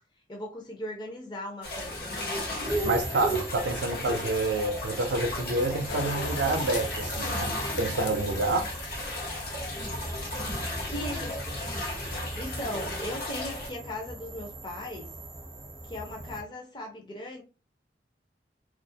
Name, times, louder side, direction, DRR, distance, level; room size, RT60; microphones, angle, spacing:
voice 1, 0.3-2.5 4.0-4.1 10.9-11.6 12.4-15.1 15.9-17.4, left 1 dB, 25° left, 0.6 m, -38 dB
sound 1, 1.6-13.7, left 2 dB, 60° left, 0.8 m, -35 dB
sound 2, 2.7-16.4, right 2 dB, 20° right, 0.5 m, -38 dB
voice 2, 2.8-7.5 7.8-8.7, right 2 dB, 75° right, 0.5 m, -28 dB
sound 3, 5.9-9.8 10.3-10.8 11.1-11.5, left 6 dB, 85° left, 0.3 m, -40 dB
2.3 x 2.0 x 2.6 m
head